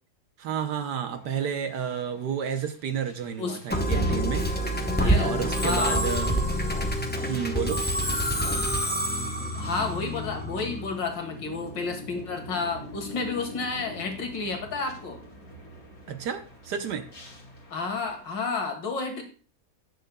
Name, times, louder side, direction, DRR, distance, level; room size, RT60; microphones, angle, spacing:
voice 1, 0.4-4.5 4.7-6.3 7.3-7.8 16.1-17.0, right 7 dB, 65° right, 8 dB, 1.3 m, -31 dB
sound 1, 1.1-18.3, left 1 dB, 35° left, 2.5 m, -47 dB
Musical instrument, 3.7-11.0, equal, 15° left, 0.3 m, -27 dB
voice 2, 5.0-6.1 9.5-15.2 17.7-19.2, left 4 dB, 70° left, 4 dB, 2.2 m, -31 dB
17.5 x 6.5 x 2.2 m, 0.39 s
omnidirectional pair, 2.1 m